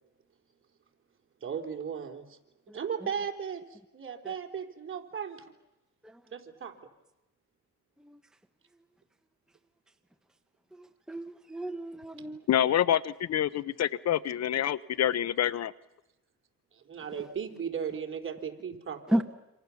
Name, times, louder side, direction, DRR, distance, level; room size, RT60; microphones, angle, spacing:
voice 1, 1.4-2.4 2.7-5.4 6.3-6.7 16.7-19.2, right 7 dB, 45° right, 3.6 m, -36 dB
voice 2, 10.8-12.4 19.1-19.2, equal, ahead, 1.1 m, -32 dB
voice 3, 12.5-15.7, left 11 dB, 60° left, 0.8 m, -27 dB
27.5 x 26.5 x 7.1 m
cardioid pair, 90°, 30 cm